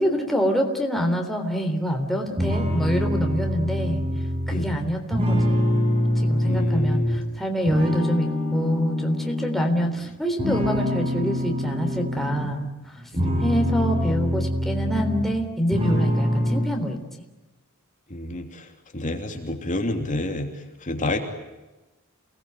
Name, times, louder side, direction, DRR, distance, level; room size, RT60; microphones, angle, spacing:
voice 1, 0.0-4.1 4.5-5.8 6.2-12.9 13.4-17.0, equal, ahead, 2 dB, 3.6 m, -26 dB
sound 1, 2.4-7.3 7.7-9.9 10.4-12.5 13.0-15.4 15.7-16.6, left 1 dB, 30° right, 6.1 m, -24 dB
voice 2, 6.4-7.1 13.2-13.4 18.1-18.7 18.9-21.2, left 1 dB, 35° left, 3 dB, 3.1 m, -29 dB
29.0 x 20.0 x 9.2 m, 1.1 s
head